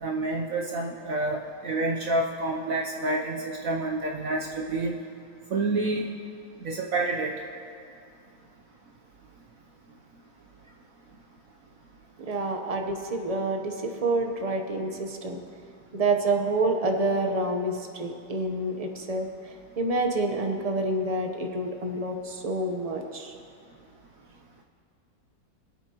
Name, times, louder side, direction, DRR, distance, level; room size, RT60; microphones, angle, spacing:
voice 1, 0.0-5.0 5.5-6.1 6.6-7.3, right 2 dB, 60° right, 0 dB, 1.0 m, -28 dB
voice 2, 12.2-15.4 15.9-19.3 19.8-23.3, right 2 dB, 30° right, 3 dB, 0.7 m, -28 dB
23.0 x 8.4 x 2.9 m, 2.4 s
omnidirectional pair, 1.9 m